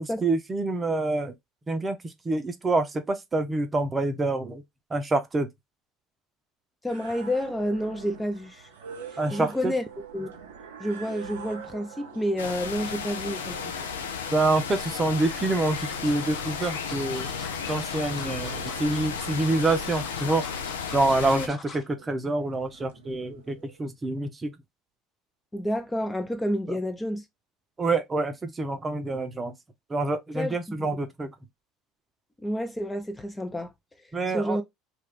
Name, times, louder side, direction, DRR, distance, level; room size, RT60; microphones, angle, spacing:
voice 1, 0.0-1.3 1.7-4.6 4.9-5.5 9.2-9.7 14.3-17.4 17.7-20.5 20.9-24.5 26.7-26.8 27.8-29.5 29.9-31.3 34.1-34.6, right 2 dB, 25° right, 0.6 m, -27 dB
voice 2, 6.8-8.7 9.3-9.8 10.1-10.3 10.8-13.9 21.3-21.5 25.5-27.2 30.4-30.5 32.4-33.7 34.3-34.6, equal, 15° left, 0.6 m, -29 dB
sound 1, 6.9-23.8, right 6 dB, 85° right, 0.6 m, -46 dB
sound 2, 12.4-21.5, left 7 dB, 85° left, 0.4 m, -34 dB
sound 3, 15.2-21.9 22.3-22.5 22.8-22.9, left 3 dB, 30° left, 0.9 m, -44 dB
2.4 x 2.4 x 3.5 m
hypercardioid pair, 70°, 0 cm